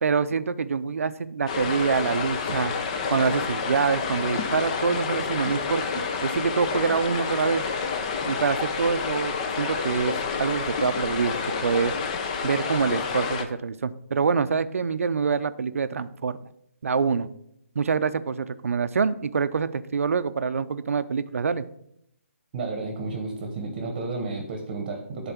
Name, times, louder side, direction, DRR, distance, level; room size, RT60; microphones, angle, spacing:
voice 1, 0.0-2.7 3.1-7.6 8.3-11.9 12.4-16.4 16.8-17.3 17.8-21.6, right 5 dB, 75° right, 13 dB, 0.6 m, -26 dB
sound 1, 1.5-13.4, left 5 dB, 30° left, 0.7 m, -29 dB
voice 2, 22.5-25.3, right 3 dB, 30° right, 3 dB, 1.1 m, -32 dB
10.5 x 4.1 x 5.8 m, 0.73 s
hypercardioid pair, 165°, 8 cm